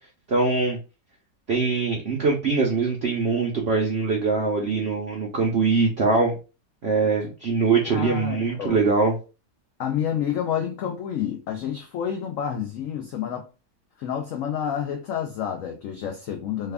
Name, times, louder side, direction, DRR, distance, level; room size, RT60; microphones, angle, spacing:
voice 1, 0.3-0.8 1.5-6.3 6.8-9.2, right 4 dB, 60° right, 0.6 m, -22 dB
voice 2, 7.9-8.8 9.8-13.5 14.0-16.7, left 9 dB, 80° left, 0.7 m, -29 dB
3.3 x 2.3 x 3.4 m
omnidirectional pair, 1.9 m